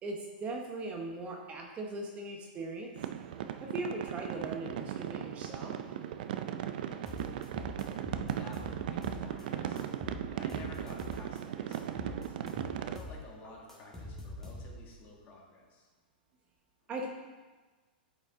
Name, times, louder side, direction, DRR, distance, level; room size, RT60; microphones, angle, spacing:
voice 1, 0.0-2.9 3.6-5.8 16.9-17.1, right 2 dB, 25° right, 1 dB, 0.9 m, -39 dB
sound 1, 3.0-13.0, right 10 dB, 65° right, 0.4 m, -37 dB
sound 2, 7.1-9.4 9.8-11.4 11.7-14.9, left 1 dB, 5° left, 1.5 m, -44 dB
voice 2, 7.9-12.4 12.8-15.9, left 2 dB, 35° left, -1 dB, 1.8 m, -52 dB
8.6 x 5.3 x 3.6 m, 1.3 s
hypercardioid pair, 135°, 5 cm